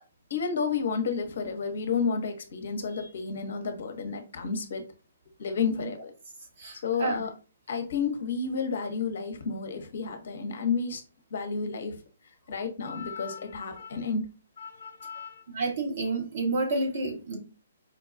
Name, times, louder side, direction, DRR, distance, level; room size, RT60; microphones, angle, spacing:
voice 1, 0.3-4.9 5.4-6.1 6.8-7.3 7.7-11.0 11.3-12.0 12.5-14.2 14.6-15.4, left 5 dB, 60° left, 0.8 m, -31 dB
voice 2, 6.6-7.2 15.5-17.4, right 3 dB, 50° right, 1.2 m, -30 dB
4.5 x 2.3 x 2.5 m
figure-of-eight pair, 130°, 0 cm